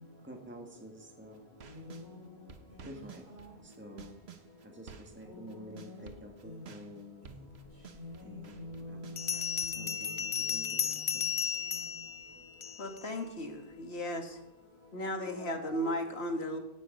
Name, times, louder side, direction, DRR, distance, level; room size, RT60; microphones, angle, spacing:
voice 1, 0.2-1.6 2.8-3.2 3.6-4.2 4.6-7.3 8.2-9.2 9.7-11.2, equal, 10° right, 1.7 m, -49 dB
sound 1, 1.3-2.1 2.5-5.2 5.5-9.7, right 6 dB, 85° right, 1.3 m, -52 dB
voice 2, 1.7-2.2 2.7-2.8 3.3-3.4 5.2-6.1 6.4-6.6 8.0-10.0 15.3-15.9 16.4-16.6, left 2 dB, 55° right, 5.1 m, -46 dB
Bell, 7.9-8.0 9.2-13.0, left 7 dB, 40° left, 0.4 m, -34 dB
voice 3, 12.8-14.4 14.9-16.6, equal, 80° left, 1.9 m, -35 dB
17.5 x 9.6 x 5.3 m
omnidirectional pair, 1.1 m